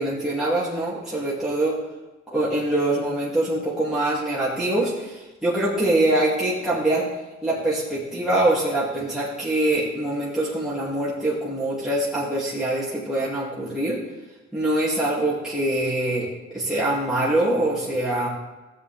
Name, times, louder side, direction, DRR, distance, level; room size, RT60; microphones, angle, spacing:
voice 1, 0.0-1.8 2.3-7.1 7.4-14.0 14.5-18.3, right 1 dB, ahead, -8 dB, 2.5 m, -24 dB
13.0 x 8.1 x 3.5 m, 1.2 s
cardioid pair, 90°, 30 cm